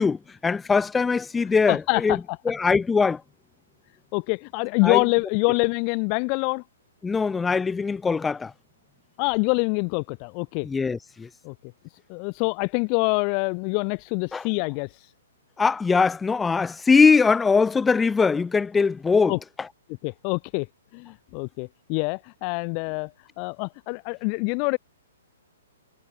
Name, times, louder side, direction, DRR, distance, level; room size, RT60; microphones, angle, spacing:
voice 1, 0.0-2.2 2.4-3.2 4.8-5.0 7.0-8.5 10.6-11.3 14.3-14.4 15.6-19.4, left 5 dB, 10° left, 4.7 m, -21 dB
voice 2, 1.7-2.2 4.1-6.6 9.2-10.7 11.4-11.5 12.1-14.9 19.3-19.4 20.0-20.7 20.9-23.1 23.4-24.8, left 40 dB or more, 35° left, 3.1 m, -25 dB
figure-of-eight pair, 120°, 0 cm